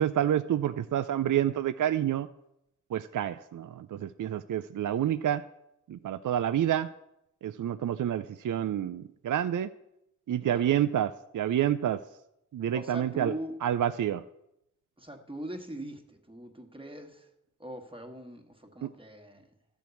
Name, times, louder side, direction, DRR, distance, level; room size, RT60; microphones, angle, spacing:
voice 1, 0.0-2.3 2.9-5.4 5.9-6.9 7.4-9.7 10.3-12.0 12.5-13.3 13.6-14.2 18.8-18.9, right 10 dB, 75° right, 12 dB, 0.4 m, -28 dB
voice 2, 10.4-10.8 12.7-13.6 15.0-17.3 17.6-19.5, right 1 dB, 15° right, 4 dB, 1.4 m, -41 dB
13.0 x 4.6 x 8.2 m, 0.83 s
wide cardioid pair, 100°, 31 cm